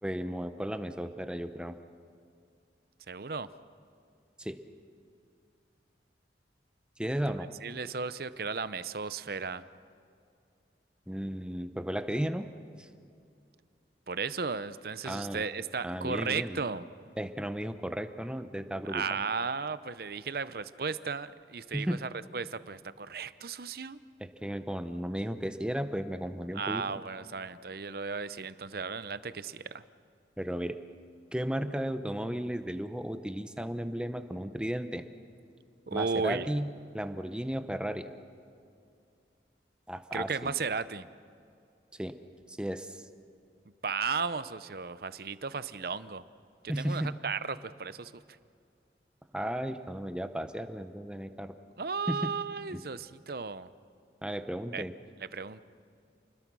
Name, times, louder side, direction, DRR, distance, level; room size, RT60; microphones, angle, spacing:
voice 1, 0.0-1.8 4.4-4.6 7.0-7.5 11.1-12.5 12.8-12.9 15.0-15.4 15.8-16.6 17.2-19.2 21.7-22.0 24.2-27.0 30.4-30.8 31.3-35.0 35.9-38.1 39.9-40.5 41.9-42.1 42.5-43.1 46.7-47.2 49.3-51.5 52.1-52.3 52.7-52.8 54.2-54.9, equal, 5° right, 9 dB, 0.8 m, -34 dB
voice 2, 3.1-3.5 7.6-9.6 14.1-16.8 18.9-24.0 26.5-29.8 35.9-36.5 40.1-41.1 43.8-46.2 46.6-48.1 51.8-53.7 54.7-54.8 55.3-55.6, right 5 dB, 55° right, 14 dB, 0.7 m, -35 dB
29.0 x 21.0 x 6.2 m, 2.5 s
head